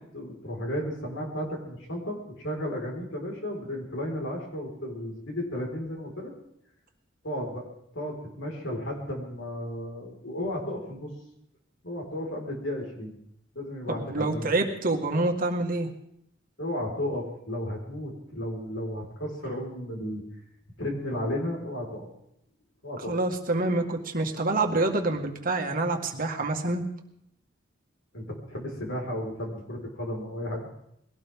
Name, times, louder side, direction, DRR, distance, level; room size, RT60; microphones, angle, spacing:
voice 1, 0.1-6.3 7.2-7.6 7.9-11.1 11.8-13.1 13.5-14.5 16.6-20.2 20.8-22.1 22.8-23.2 28.1-30.7, left 1 dB, 70° left, 0 dB, 5.0 m, -33 dB
voice 2, 13.9-15.9 23.1-26.8, right 2 dB, 50° right, 3 dB, 1.9 m, -27 dB
21.5 x 17.5 x 3.7 m, 0.76 s
head